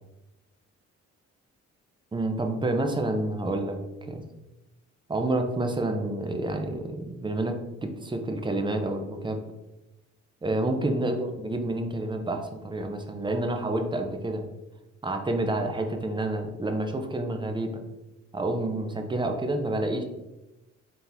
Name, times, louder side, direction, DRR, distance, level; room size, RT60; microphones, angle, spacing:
voice 1, 2.1-4.2 5.1-9.4 10.4-14.5 15.0-17.8 18.3-20.0, right 2 dB, 15° right, 5 dB, 0.6 m, -29 dB
4.1 x 2.8 x 3.4 m, 0.99 s
cardioid pair, 90°, 30 cm